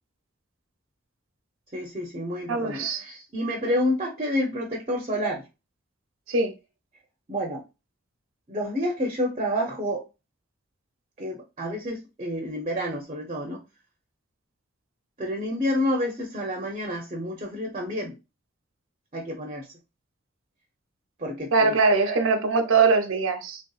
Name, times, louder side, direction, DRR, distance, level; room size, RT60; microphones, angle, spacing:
voice 1, 1.7-5.4 7.3-7.6 8.5-10.1 11.2-13.6 15.2-18.1 19.1-19.7 21.2-22.2, equal, 35° right, 0.6 m, -29 dB
voice 2, 2.5-3.0 6.3-6.5 21.5-23.6, right 4 dB, 85° right, 0.6 m, -22 dB
3.4 x 2.6 x 2.3 m
head